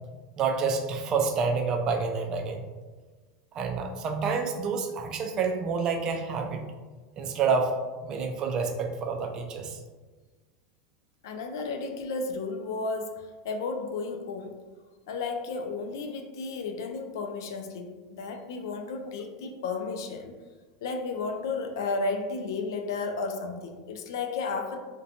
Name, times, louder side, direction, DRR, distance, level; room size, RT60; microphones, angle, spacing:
voice 1, 0.4-2.6 3.6-6.6 7.2-9.8, right 5 dB, 30° right, 4 dB, 0.3 m, -28 dB
voice 2, 11.2-14.5 15.1-20.3 20.8-24.8, left 4 dB, 85° left, 4 dB, 0.3 m, -33 dB
2.5 x 2.1 x 2.7 m, 1.3 s
supercardioid pair, 140°, 2 cm